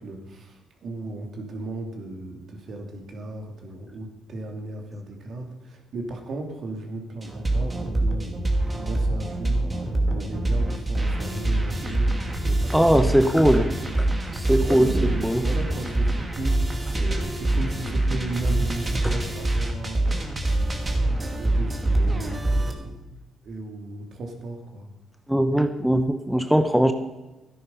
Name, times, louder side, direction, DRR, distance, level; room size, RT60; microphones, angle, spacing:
voice 1, 0.0-13.7 14.6-20.4 20.6-24.9, right 2 dB, 60° right, 2 dB, 2.7 m, -36 dB
sound 1, 7.2-22.7, right 1 dB, 25° right, 2.2 m, -25 dB
voice 2, 12.7-13.7 14.0-14.9 15.2-15.4 25.3-26.9, equal, 5° right, 8 dB, 0.8 m, -20 dB
13.0 x 10.5 x 5.6 m, 1.1 s
cardioid pair, 90°, 0 cm